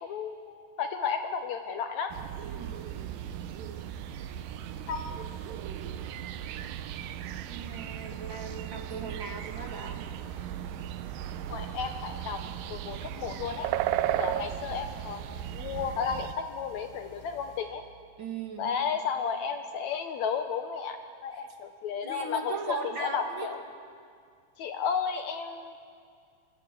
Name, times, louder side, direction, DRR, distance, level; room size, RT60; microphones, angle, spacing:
voice 1, 0.0-2.1 4.9-5.3 11.5-12.4 12.7-13.7 14.2-17.8 18.6-23.6 24.6-25.7, left 6 dB, 75° left, 7 dB, 1.7 m, -33 dB
sound 1, 2.1-16.3, right 12 dB, 75° right, 2.4 m, -36 dB
voice 2, 2.5-2.8 7.4-10.0 10.6-10.7 18.2-18.7 21.3-21.6 22.0-23.5, right 4 dB, 40° right, 3 dB, 2.3 m, -38 dB
sound 2, 2.6-17.6, left 3 dB, 35° left, 4.9 m, -53 dB
27.0 x 22.5 x 7.6 m, 2.3 s
omnidirectional pair, 4.2 m